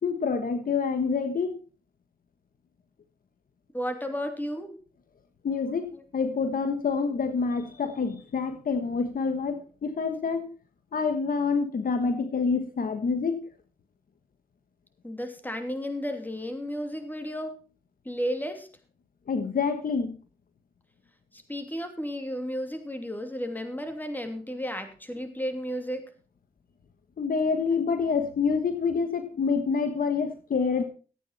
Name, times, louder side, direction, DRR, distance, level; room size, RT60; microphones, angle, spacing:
voice 1, 0.0-1.6 5.4-10.5 10.9-13.5 19.3-20.2 27.2-30.8, left 5 dB, 65° left, 8 dB, 1.4 m, -27 dB
voice 2, 3.7-4.8 5.9-6.0 15.0-17.6 18.0-18.7 21.3-26.1, equal, 10° left, 6 dB, 2.9 m, -33 dB
14.5 x 9.0 x 4.3 m, 0.37 s
cardioid pair, 55°, 16 cm